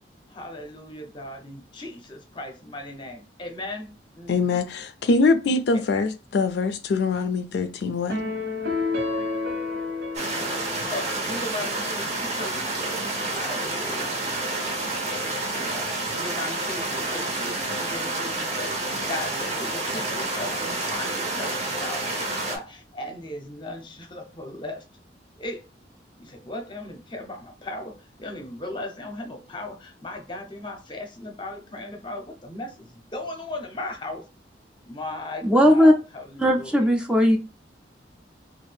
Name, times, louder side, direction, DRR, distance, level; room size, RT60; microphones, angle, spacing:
voice 1, 0.3-4.6 5.7-6.1 10.9-14.2 15.1-24.8 25.4-25.6 26.2-34.3 34.8-36.9, left 1 dB, 25° left, 0.6 m, -37 dB
voice 2, 4.3-8.2, left 3 dB, 65° left, 0.3 m, -23 dB
sound 1, 8.1-11.6, left 3 dB, 70° right, 1.3 m, -30 dB
sound 2, 10.1-22.6, right 2 dB, 40° right, 0.7 m, -29 dB
voice 3, 35.4-35.9 36.4-37.4, equal, 5° right, 0.4 m, -17 dB
2.7 x 2.4 x 3.3 m
head